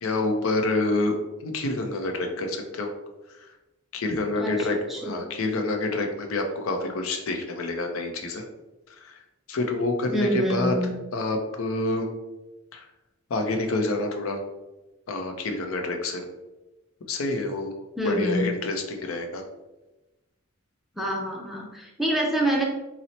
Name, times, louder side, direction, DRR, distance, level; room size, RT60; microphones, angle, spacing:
voice 1, 0.0-1.2 1.4-2.9 3.9-8.4 8.9-9.2 9.5-10.7 11.1-12.1 12.7-12.8 13.3-14.4 15.1-16.2 17.1-17.7 18.0-19.4, left 2 dB, 80° left, 4 dB, 0.5 m, -27 dB
voice 2, 4.4-5.1 10.1-10.9 18.0-18.5 21.0-22.6, equal, ahead, -1 dB, 0.4 m, -26 dB
2.8 x 2.0 x 4.0 m, 1.0 s
head